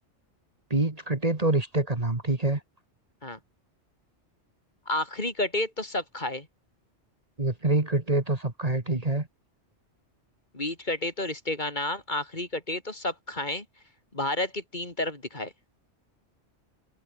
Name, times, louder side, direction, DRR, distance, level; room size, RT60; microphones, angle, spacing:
voice 1, 0.7-2.6 7.4-9.3, right 2 dB, 30° right, 2.3 m, -26 dB
voice 2, 4.8-6.5 10.5-13.6 14.1-15.5, left 2 dB, 40° left, 3.4 m, -31 dB
omnidirectional pair, 1.2 m